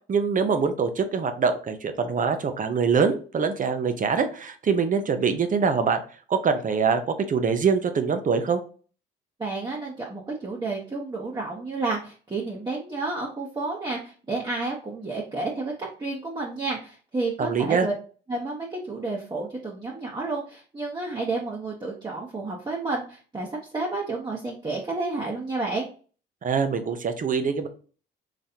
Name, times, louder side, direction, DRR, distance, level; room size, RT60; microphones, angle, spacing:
voice 1, 0.1-6.0 6.3-8.6 17.4-17.9 26.4-27.7, right 5 dB, 40° right, 9 dB, 0.8 m, -24 dB
voice 2, 9.4-17.9 18.3-25.9, right 3 dB, 20° right, -3 dB, 1.0 m, -31 dB
4.1 x 3.1 x 2.8 m, 0.39 s
cardioid pair, 90°, 20 cm